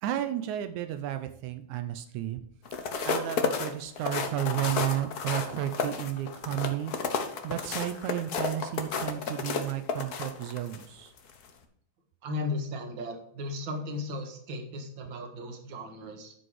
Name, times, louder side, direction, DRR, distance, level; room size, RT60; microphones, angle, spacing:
voice 1, 0.0-2.5 3.1-6.9 7.4-11.1, right 12 dB, 85° right, 9 dB, 2.1 m, -32 dB
sound 1, 2.6-10.8 11.3-11.5, left 5 dB, 85° left, 0.8 m, -32 dB
voice 2, 12.2-16.3, left 2 dB, 45° right, 4 dB, 2.2 m, -36 dB
11.5 x 5.2 x 4.8 m, 0.68 s
omnidirectional pair, 3.3 m